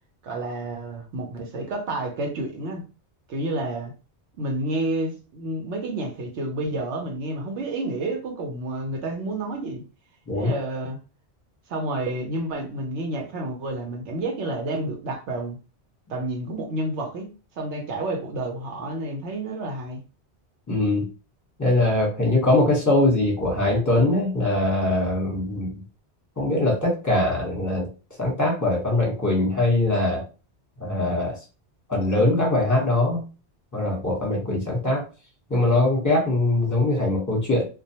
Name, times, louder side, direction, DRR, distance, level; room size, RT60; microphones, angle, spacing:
voice 1, 0.2-2.8 3.3-3.9 4.4-9.8 10.4-11.0 11.7-15.6 16.1-17.3 17.6-20.0, right 2 dB, 90° right, 2 dB, 1.0 m, -30 dB
voice 2, 20.7-21.1 21.6-25.7 26.4-27.9 28.2-30.2 30.8-31.4 31.9-33.2 33.7-35.0 35.5-37.7, left 2 dB, 15° left, -2 dB, 0.9 m, -22 dB
2.3 x 2.2 x 2.7 m, 0.33 s
omnidirectional pair, 1.1 m